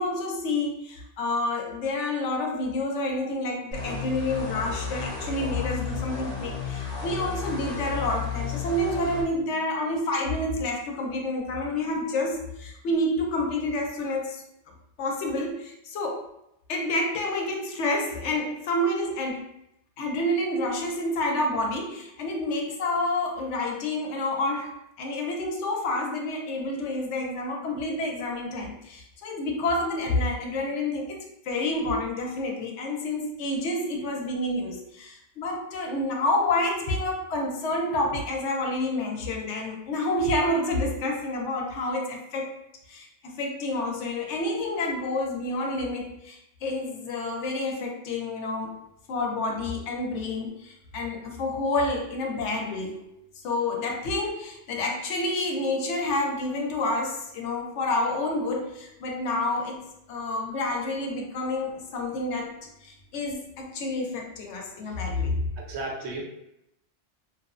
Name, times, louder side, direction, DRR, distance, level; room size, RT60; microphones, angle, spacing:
voice 1, 0.0-14.4 15.0-16.3 16.7-19.5 20.0-42.6 42.9-48.8 49.1-59.8 60.1-65.4, left 2 dB, 75° left, 1 dB, 0.9 m, -29 dB
sound 1, 3.7-9.2, left 6 dB, 40° left, 0.8 m, -33 dB
voice 2, 65.6-66.2, right 2 dB, 70° right, 0 dB, 0.8 m, -34 dB
2.8 x 2.0 x 2.4 m, 0.81 s
omnidirectional pair, 1.2 m